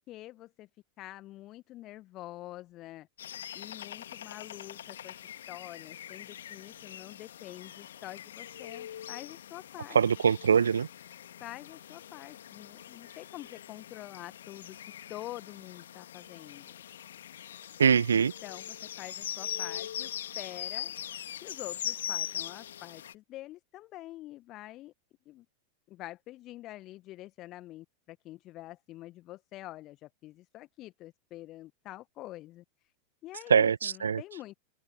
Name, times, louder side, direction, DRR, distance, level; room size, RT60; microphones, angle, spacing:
voice 1, 0.1-0.7 1.0-3.1 3.5-5.2 5.5-10.0 11.4-14.8 15.1-16.7 18.4-20.9 21.4-24.9 25.2-25.4 25.9-32.6 33.2-34.5, left 16 dB, 35° left, 1.5 m, -46 dB
sound 1, 3.2-23.1, left 10 dB, 60° left, 1.8 m, -42 dB
voice 2, 9.9-10.9 17.8-18.3 33.5-34.2, right 7 dB, 70° right, 1.1 m, -23 dB
figure-of-eight pair, 90°, 0 cm